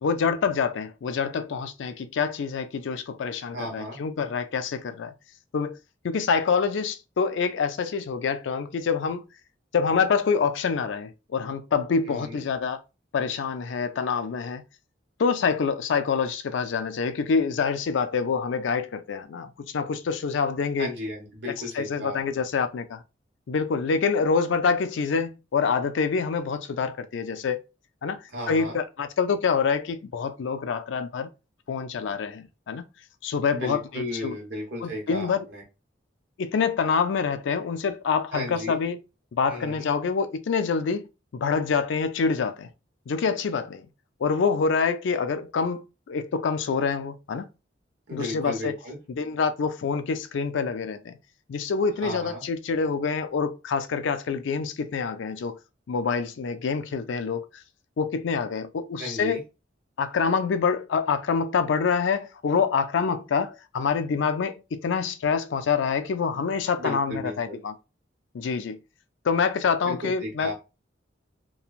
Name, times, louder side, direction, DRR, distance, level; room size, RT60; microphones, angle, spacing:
voice 1, 0.0-5.1 5.5-5.8 6.0-9.2 9.7-12.8 13.1-14.6 15.2-20.9 21.7-23.0 23.5-27.6 28.0-31.3 31.7-32.8 33.2-34.4 34.8-35.5 36.4-39.0 39.3-41.0 41.3-42.7 43.1-43.9 44.2-47.5 48.1-48.7 49.1-51.2 51.5-55.6 55.9-57.4 58.0-59.4 60.0-67.7 68.3-68.8 69.2-70.5, left 5 dB, 75° left, 0.4 m, -26 dB
voice 2, 3.5-4.0 12.1-12.4 20.8-22.2 28.3-28.8 33.5-35.6 38.3-38.8 39.5-39.9 48.1-49.0 52.0-52.4 59.0-59.4 66.8-67.6 69.8-70.5, left 1 dB, 60° right, 1.1 m, -34 dB
3.0 x 2.2 x 2.4 m
head